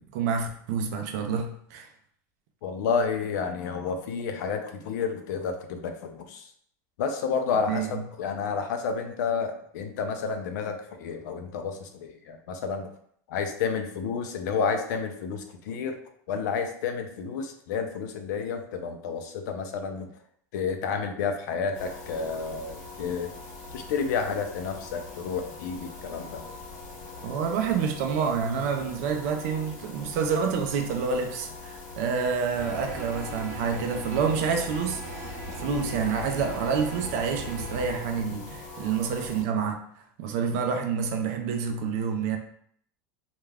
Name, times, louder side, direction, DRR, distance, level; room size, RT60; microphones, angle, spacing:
voice 1, 0.1-1.9 7.7-8.0 27.2-39.8 40.2-42.4, right 6 dB, 60° right, 4 dB, 0.4 m, -28 dB
voice 2, 2.6-6.5 7.0-12.9 13.3-16.0 16.3-20.1 20.5-23.3 23.7-26.5, left 5 dB, 80° left, 6 dB, 0.5 m, -30 dB
sound 1, 21.7-39.4, left 3 dB, 50° left, 0.8 m, -43 dB
sound 2, 32.5-38.0, right 1 dB, 80° right, 1.0 m, -38 dB
2.3 x 2.2 x 3.3 m, 0.64 s
supercardioid pair, 150°, 10 cm